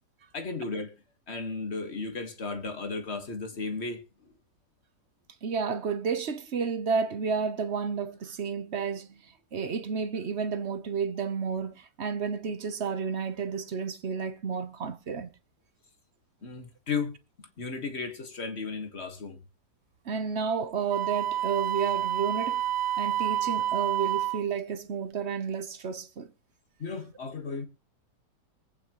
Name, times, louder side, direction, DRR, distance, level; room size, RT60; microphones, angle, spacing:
voice 1, 0.3-0.9 1.3-4.3 16.4-19.4 26.8-27.7, left 4 dB, 40° left, 1.7 m, -35 dB
voice 2, 5.4-9.2 9.5-15.3 20.1-22.6 23.0-26.3, right 6 dB, 50° right, 1.0 m, -31 dB
Wind instrument woodwind instrument, 20.9-24.5, right 12 dB, 80° right, 1.4 m, -29 dB
22.5 x 8.8 x 3.0 m
omnidirectional pair, 1.8 m